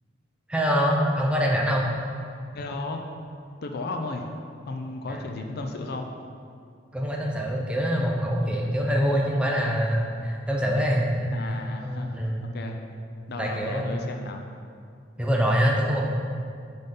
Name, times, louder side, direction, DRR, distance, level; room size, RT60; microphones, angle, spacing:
voice 1, 0.5-1.9 5.1-5.2 6.9-11.5 11.8-12.4 13.4-14.0 15.2-16.0, equal, 5° right, -2 dB, 0.6 m, -24 dB
voice 2, 2.5-3.1 3.6-4.3 4.7-6.1 11.3-12.8 13.3-14.4, left 2 dB, 60° left, 4 dB, 0.5 m, -34 dB
5.4 x 5.4 x 3.8 m, 2.3 s
head